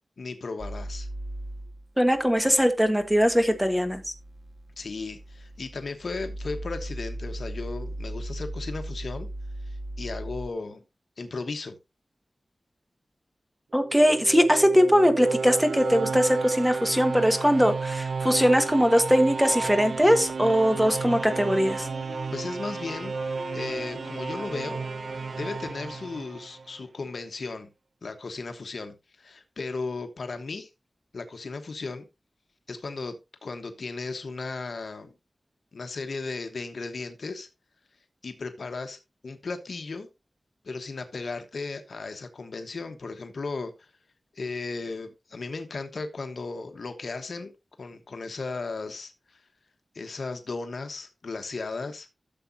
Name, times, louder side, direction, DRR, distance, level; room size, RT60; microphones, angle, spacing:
voice 1, 0.2-1.1 4.8-9.3 9.6-10.8 11.2-11.7 22.3-23.2 23.5-24.8 25.4-27.7 28.0-30.7 31.1-32.0 32.7-33.2 33.4-35.1 35.7-37.5 38.2-39.0 39.2-40.1 40.6-43.9 44.3-47.5 47.8-49.4 49.9-52.1, left 3 dB, 70° left, 1.1 m, -35 dB
sound 1, 0.6-10.5, right 1 dB, 55° right, 1.4 m, -38 dB
voice 2, 2.0-4.0 13.7-21.9, equal, 5° right, 1.4 m, -21 dB
sound 2, 13.7-26.8, right 4 dB, 80° right, 0.5 m, -33 dB
Wind instrument woodwind instrument, 21.0-26.0, left 3 dB, 50° left, 1.8 m, -45 dB
13.5 x 7.2 x 2.7 m
wide cardioid pair, 110°, 0 cm